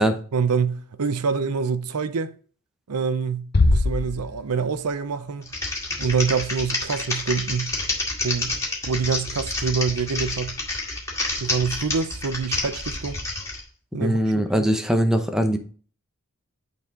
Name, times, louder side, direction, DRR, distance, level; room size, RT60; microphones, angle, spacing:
voice 1, 0.3-2.3 2.9-5.5 6.0-7.7 8.2-8.6 8.8-10.5 11.4-13.2 13.9-14.2 14.5-14.7, right 5 dB, 85° right, 0.6 m, -26 dB
Bass drum, 3.5-5.0, left 2 dB, 45° left, 0.6 m, -22 dB
Typing, 5.4-13.6, left 2 dB, 15° left, 2.0 m, -29 dB
voice 2, 14.0-15.6, equal, ahead, 0.7 m, -21 dB
9.1 x 4.1 x 3.7 m
head